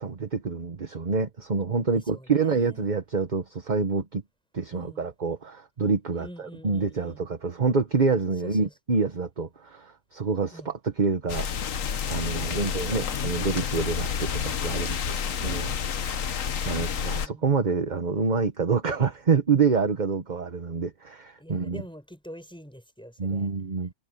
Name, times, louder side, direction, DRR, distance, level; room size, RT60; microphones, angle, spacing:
voice 1, 0.0-4.2 4.5-11.5 12.1-21.8 23.2-23.9, right 5 dB, 30° right, 1.2 m, -27 dB
voice 2, 1.9-2.9 4.7-5.0 6.1-7.2 8.4-8.7 10.5-10.7 16.6-17.4 21.4-23.5, equal, 5° left, 6.3 m, -46 dB
sound 1, 11.3-17.3, left 7 dB, 60° left, 1.4 m, -29 dB
omnidirectional pair, 1.6 m